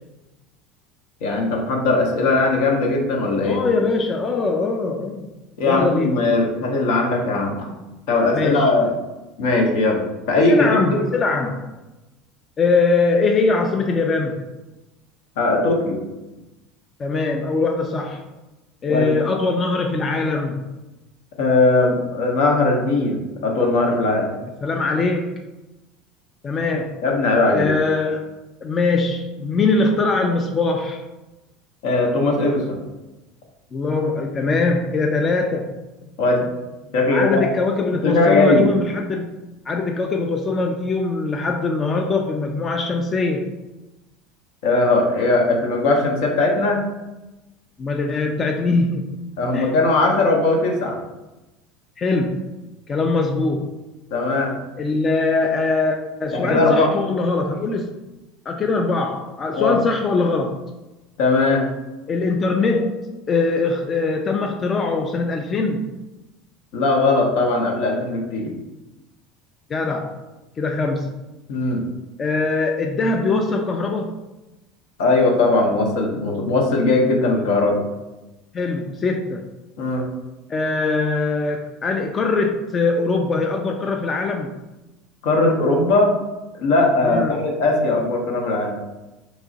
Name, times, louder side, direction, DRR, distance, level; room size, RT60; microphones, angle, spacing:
voice 1, 1.2-3.6 5.6-7.6 8.1-8.9 9.4-10.0 10.3-11.0 15.4-16.0 18.9-19.1 21.4-24.3 27.0-27.7 31.8-32.8 36.2-36.5 36.9-37.5 37.9-38.7 44.6-46.8 49.4-51.0 54.1-54.5 56.3-56.9 59.5-59.8 61.2-61.7 66.7-68.5 71.5-71.8 75.0-77.8 79.8-80.1 85.2-86.1 86.6-88.8, left 2 dB, 75° left, 1 dB, 0.8 m, -19 dB
voice 2, 3.4-5.3 5.6-6.1 8.3-8.7 10.5-11.7 12.6-14.5 17.0-18.3 18.8-20.7 24.6-25.3 26.4-27.0 27.5-28.2 28.6-31.0 33.7-35.7 37.1-39.3 39.7-43.5 47.8-49.2 49.5-49.7 52.0-52.5 52.9-53.8 54.8-58.0 58.5-60.6 62.1-66.0 69.7-70.2 70.6-71.1 72.2-74.1 78.5-79.5 80.5-84.5 87.0-87.4, left 3 dB, 30° left, 3 dB, 0.3 m, -22 dB
3.0 x 2.4 x 3.8 m, 1.0 s
supercardioid pair, 100°, 0 cm